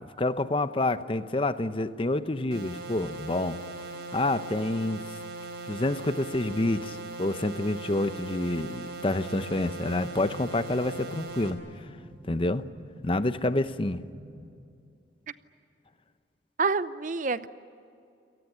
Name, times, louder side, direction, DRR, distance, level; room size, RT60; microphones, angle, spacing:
voice 1, 0.0-3.6 4.1-5.0 5.7-11.6 12.3-12.6 13.0-14.0, left 2 dB, 30° left, 12 dB, 0.7 m, -28 dB
sound 1, 2.5-11.5, right 2 dB, 65° right, 3.8 m, -40 dB
sound 2, 9.5-14.5, equal, 85° right, 5.7 m, -48 dB
voice 2, 16.6-17.5, right 4 dB, 45° right, 14 dB, 0.7 m, -27 dB
28.5 x 18.5 x 10.0 m, 2.5 s
head